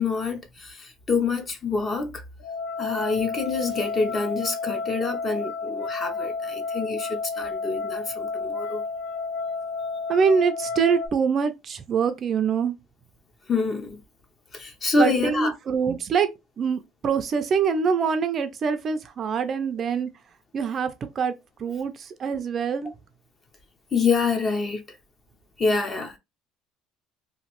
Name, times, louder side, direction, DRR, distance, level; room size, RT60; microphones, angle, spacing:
voice 1, 0.0-2.2 2.8-8.8 13.5-14.0 14.5-15.5 23.9-24.8 25.6-26.2, left 4 dB, 25° left, 0.5 m, -26 dB
sound 1, 2.4-11.1, left 4 dB, 75° left, 0.8 m, -31 dB
voice 2, 10.1-12.7 15.0-16.3 16.6-20.1 20.5-21.3 21.6-22.9, right 6 dB, 30° right, 0.3 m, -24 dB
2.9 x 2.5 x 2.9 m
cardioid pair, 165°, 0 cm